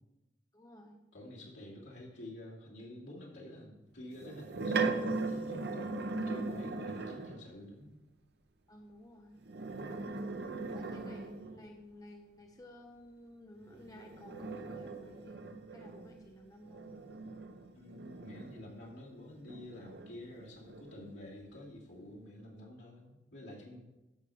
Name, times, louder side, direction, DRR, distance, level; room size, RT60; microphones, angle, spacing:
voice 1, 0.5-1.0 8.7-9.4 10.7-16.9, left 1 dB, 20° left, 2 dB, 0.7 m, -54 dB
voice 2, 1.1-7.9 17.7-23.8, left 1 dB, 75° left, -5 dB, 2.7 m, -49 dB
sound 1, 4.1-7.5 9.4-11.7 13.7-18.9 19.4-21.2, right 3 dB, 60° right, 0.7 m, -39 dB
13.0 x 4.9 x 4.9 m, 0.99 s
head